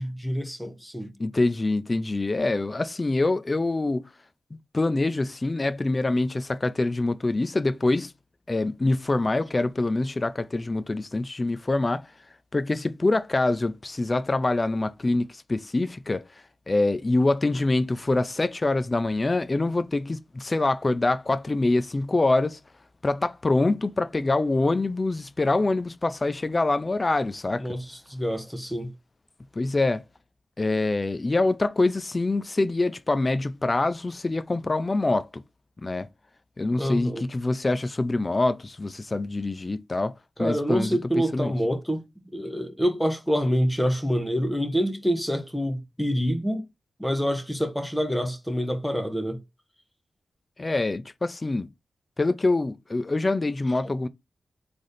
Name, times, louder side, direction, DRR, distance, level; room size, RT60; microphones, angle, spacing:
voice 1, 0.0-1.1 27.6-28.9 36.8-37.2 40.4-42.0 42.3-46.6 47.0-49.4 53.8-53.9, equal, 5° left, 1.4 m, -26 dB
voice 2, 1.2-4.1 4.7-8.1 8.5-12.1 12.5-16.2 16.7-22.6 23.0-27.6 29.5-30.0 30.6-35.4 35.8-36.1 36.6-40.1 40.4-41.5 50.6-51.7 52.2-54.1, left 2 dB, 35° left, 0.5 m, -25 dB
3.7 x 3.4 x 4.0 m
cardioid pair, 70°, 0 cm